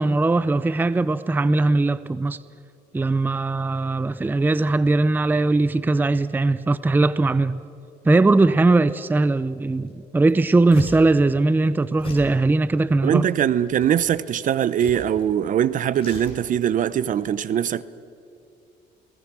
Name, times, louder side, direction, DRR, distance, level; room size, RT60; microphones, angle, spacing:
voice 1, 0.0-2.4 2.9-7.6 8.0-13.3, right 2 dB, 10° right, 0.5 m, -20 dB
sound 1, 9.9-10.0 10.2-11.2 12.0-12.4 13.0-14.2 14.8-15.3 15.6-16.8 17.1-17.2, left 3 dB, 30° left, 5.6 m, -39 dB
voice 2, 13.0-17.8, right 9 dB, 50° right, 0.8 m, -22 dB
29.0 x 19.5 x 6.1 m
cardioid pair, 110°, 17 cm